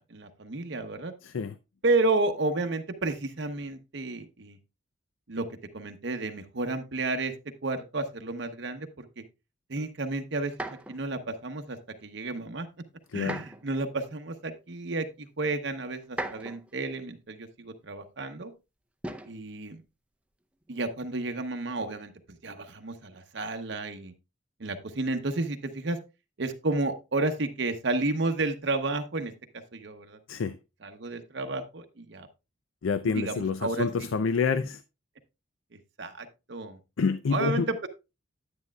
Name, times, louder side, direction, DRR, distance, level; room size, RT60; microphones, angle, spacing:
voice 1, 0.0-1.1 1.8-4.6 5.3-5.5 5.7-7.3 7.6-9.2 9.7-12.7 13.1-18.5 19.3-19.8 20.7-22.1 22.4-24.1 24.6-26.0 26.4-29.3 29.7-30.2 30.8-32.3 33.1-34.1 36.0-36.8 37.3-37.9, right 2 dB, 60° right, 0.8 m, -31 dB
voice 2, 1.2-1.6 13.1-13.4 30.3-30.6 32.8-34.8 37.0-37.7, left 5 dB, 85° left, 0.5 m, -28 dB
sound 1, 10.5-11.0 13.2-13.7 14.7-14.8 16.0-16.8 19.0-19.4 20.6-21.0, right 1 dB, 5° right, 0.5 m, -37 dB
9.7 x 9.5 x 2.3 m
head